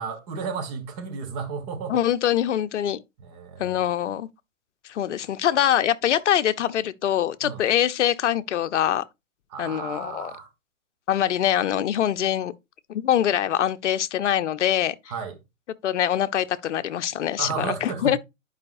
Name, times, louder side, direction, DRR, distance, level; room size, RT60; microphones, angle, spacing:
voice 1, 0.0-2.0 3.2-3.8 7.4-7.6 9.5-10.5 15.1-15.4 17.4-18.2, right 5 dB, 30° right, 1.5 m, -33 dB
voice 2, 1.9-3.0 3.6-4.3 4.9-9.0 9.6-10.3 11.1-12.5 12.9-15.0 15.8-18.2, left 10 dB, 60° left, 0.7 m, -24 dB
10.5 x 4.9 x 2.6 m
figure-of-eight pair, 125°, 40 cm